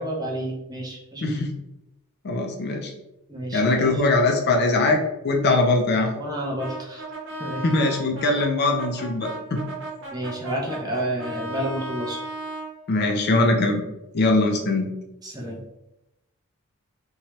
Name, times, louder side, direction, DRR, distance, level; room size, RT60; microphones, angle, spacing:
voice 1, 0.0-1.4 3.3-4.0 6.1-7.0 7.4-7.6 10.1-12.2 15.2-15.6, right 1 dB, 15° right, -3 dB, 0.6 m, -30 dB
voice 2, 1.2-1.5 2.2-2.9 3.5-6.1 7.6-9.6 12.9-13.8 14.1-14.9, left 2 dB, 50° left, 3 dB, 0.4 m, -21 dB
Brass instrument, 6.6-12.7, right 2 dB, 55° right, 0.9 m, -35 dB
2.7 x 2.2 x 3.0 m, 0.91 s
head